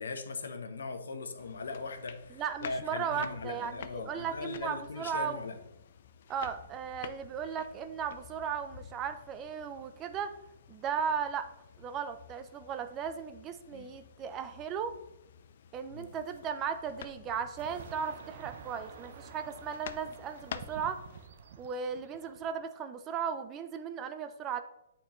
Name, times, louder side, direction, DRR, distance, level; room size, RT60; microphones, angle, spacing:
voice 1, 0.0-5.6 13.7-13.9 15.9-16.1, left 4 dB, 90° left, 7 dB, 0.9 m, -40 dB
sound 1, 1.4-21.3, left 8 dB, 55° left, 0.4 m, -50 dB
voice 2, 2.3-5.4 6.3-10.3 10.7-11.5 11.8-15.0 15.7-21.0 21.6-24.6, right 7 dB, 20° right, 10 dB, 0.4 m, -36 dB
sound 2, 17.6-22.6, right 7 dB, 55° right, 0.7 m, -50 dB
8.6 x 4.4 x 3.1 m, 0.86 s
hypercardioid pair, 155°, 0 cm